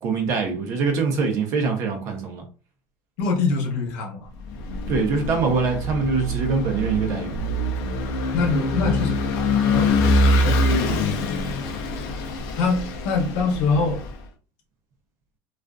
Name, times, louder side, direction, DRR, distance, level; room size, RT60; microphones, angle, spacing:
voice 1, 0.0-2.4 4.9-7.4, right 4 dB, 40° right, 0.6 m, -24 dB
voice 2, 3.2-4.3 8.3-11.0 12.6-14.0, left 4 dB, 85° left, 0.8 m, -25 dB
Vehicle / Engine, 4.4-14.2, left 1 dB, 55° left, 0.5 m, -24 dB
2.5 x 2.4 x 2.3 m
cardioid pair, 180°, 8 cm